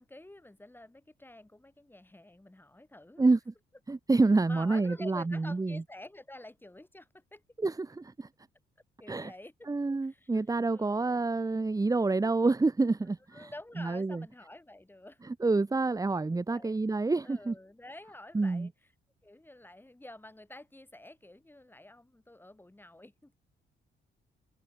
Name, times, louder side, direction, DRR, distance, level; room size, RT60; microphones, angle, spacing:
voice 1, 0.0-3.3 4.5-7.4 9.0-9.7 10.0-10.4 10.7-11.2 13.3-15.2 16.3-16.7 17.2-18.7 19.2-23.4, left 1 dB, 10° left, 7.0 m, -49 dB
voice 2, 3.2-3.5 3.9-5.8 7.6-8.3 9.1-9.3 9.7-13.5 13.8-14.2 15.2-17.5 18.3-18.7, right 3 dB, 15° right, 1.3 m, -28 dB
cardioid pair, 90°, 20 cm